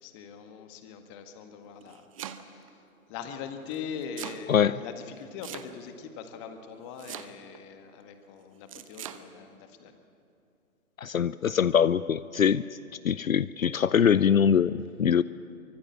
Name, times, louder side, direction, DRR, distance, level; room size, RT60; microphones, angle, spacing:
voice 1, 0.0-10.0, left 7 dB, 20° left, 6 dB, 1.8 m, -42 dB
Domestic sounds home sounds, 1.6-2.7 3.7-4.4 5.4-6.0 7.0-7.6 8.7-9.2, right 10 dB, 25° right, 0.9 m, -41 dB
voice 2, 11.0-12.6 13.0-15.2, left 8 dB, 70° left, 17 dB, 0.7 m, -23 dB
24.5 x 24.5 x 7.4 m, 2.7 s
figure-of-eight pair, 140°, 43 cm